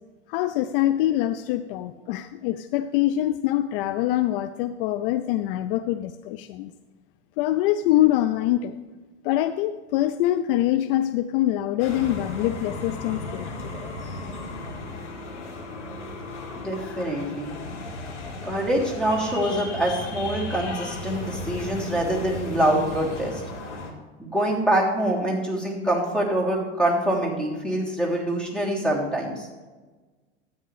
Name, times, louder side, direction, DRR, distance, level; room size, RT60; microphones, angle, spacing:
voice 1, 0.3-6.7 7.4-8.8 9.2-13.7, left 13 dB, 55° left, 11 dB, 0.5 m, -24 dB
sound 1, 11.8-23.9, left 2 dB, 85° left, 1.8 m, -35 dB
voice 2, 16.5-17.6 18.4-23.4 24.2-29.5, right 1 dB, ahead, -2 dB, 3.2 m, -25 dB
13.0 x 8.9 x 3.3 m, 1.3 s
hypercardioid pair, 90°, 34 cm